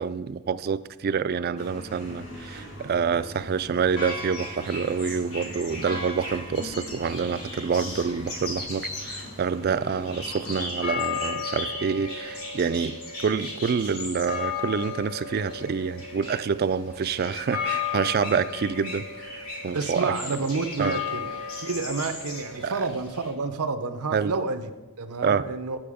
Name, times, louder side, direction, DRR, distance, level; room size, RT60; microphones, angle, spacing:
voice 1, 0.0-13.0 13.2-19.0 19.6-20.1 20.8-21.0 22.6-22.8 24.1-24.3 25.2-25.4, right 6 dB, 45° right, 14 dB, 0.3 m, -27 dB
sound 1, 1.6-10.6, equal, 60° left, 3.0 m, -42 dB
sound 2, 3.9-23.3, left 4 dB, 80° left, 2.5 m, -35 dB
voice 2, 19.7-21.3 21.6-24.7 25.0-25.8, right 4 dB, 85° right, 9 dB, 0.7 m, -29 dB
8.9 x 7.5 x 5.0 m, 1.1 s
head